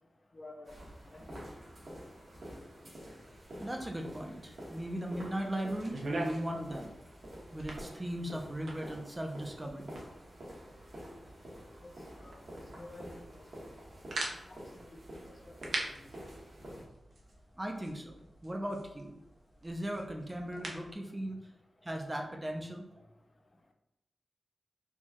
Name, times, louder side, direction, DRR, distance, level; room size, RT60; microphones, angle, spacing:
voice 1, 0.3-0.8 1.1-1.5 11.8-11.9 12.2-12.4 12.8-13.5 14.5-14.6 14.9-16.1, left 2 dB, 40° left, 2 dB, 0.4 m, -51 dB
sound 1, 0.6-16.8, equal, 55° right, 1.4 m, -49 dB
voice 2, 3.6-6.9 7.5-9.9 17.6-18.2 18.4-19.2 19.6-21.4 21.8-23.0, right 1 dB, 15° right, 2 dB, 0.5 m, -38 dB
sound 2, 5.7-20.9, right 2 dB, 70° right, 0.7 m, -45 dB
4.4 x 2.3 x 2.9 m, 0.90 s
wide cardioid pair, 110°, 0 cm